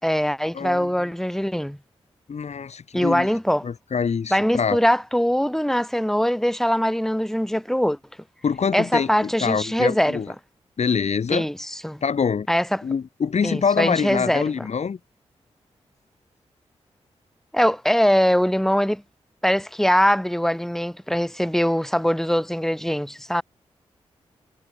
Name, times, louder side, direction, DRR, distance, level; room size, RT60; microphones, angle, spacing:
voice 1, 0.0-1.8 2.9-3.7 4.3-8.0 8.7-10.2 11.3-12.0 12.5-12.8 13.4-14.4 17.5-19.0 19.4-23.4, equal, 5° left, 4.8 m, -22 dB
voice 2, 0.5-0.9 2.3-3.3 3.6-4.8 8.4-10.3 10.8-11.5 12.0-12.5 12.8-15.0, left 6 dB, 65° left, 3.2 m, -25 dB
supercardioid pair, 45°, 12 cm